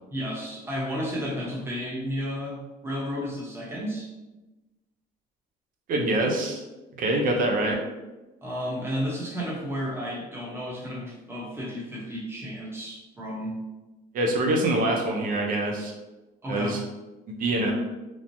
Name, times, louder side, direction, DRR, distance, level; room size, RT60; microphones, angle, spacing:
voice 1, 0.1-4.1 8.4-13.5 16.4-16.8, equal, 15° right, -4 dB, 0.8 m, -32 dB
voice 2, 5.9-6.6 6.9-7.8 14.1-15.9 16.5-16.8 17.3-17.7, right 1 dB, 55° right, 1 dB, 0.6 m, -25 dB
3.1 x 2.1 x 2.6 m, 1.1 s
cardioid pair, 110°, 17 cm